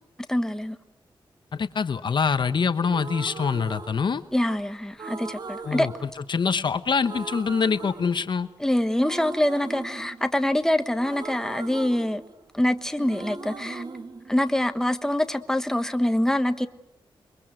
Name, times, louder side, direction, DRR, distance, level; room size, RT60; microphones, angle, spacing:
voice 1, 0.3-0.8 4.3-5.9 8.6-12.2 12.5-13.8 14.3-16.7, left 1 dB, 5° left, 1.3 m, -25 dB
voice 2, 1.5-4.2 5.6-5.9 6.3-8.5, left 5 dB, 55° left, 1.0 m, -24 dB
sound 1, 2.9-4.5 5.0-6.7 7.0-8.6 9.0-12.7 13.0-15.0, right 4 dB, 50° right, 1.8 m, -39 dB
28.0 x 22.5 x 7.8 m
wide cardioid pair, 100°, 9 cm